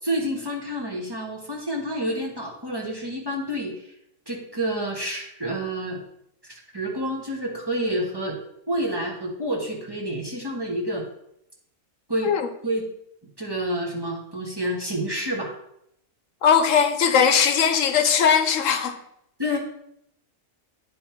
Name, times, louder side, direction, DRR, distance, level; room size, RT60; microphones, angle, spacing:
voice 1, 0.0-3.9 4.3-6.0 6.4-8.4 8.7-11.0 12.1-12.3 12.6-12.8 13.4-15.5 19.4-19.6, equal, 20° right, 1.3 m, -28 dB
voice 2, 16.4-19.0, left 7 dB, 70° left, 1.1 m, -19 dB
9.9 x 3.6 x 4.4 m
omnidirectional pair, 1.4 m